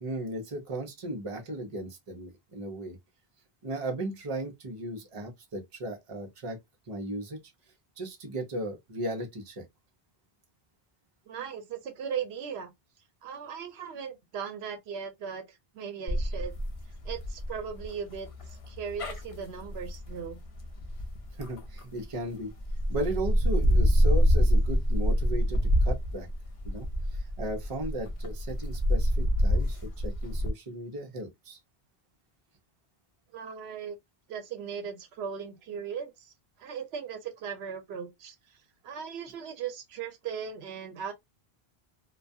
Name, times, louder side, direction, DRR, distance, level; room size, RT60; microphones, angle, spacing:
voice 1, 0.0-3.0 3.6-6.6 6.9-7.4 8.0-9.6 21.4-22.5 22.9-26.3 26.6-31.6, right 1 dB, 35° right, 0.7 m, -36 dB
voice 2, 11.3-12.7 13.2-16.5 17.0-20.4 33.3-34.0 34.3-36.3 36.6-38.4 38.8-41.1, right 7 dB, 90° right, 0.9 m, -38 dB
sound 1, 16.1-22.1 22.6-30.5, equal, 40° left, 0.5 m, -26 dB
2.3 x 2.3 x 2.6 m
omnidirectional pair, 1.0 m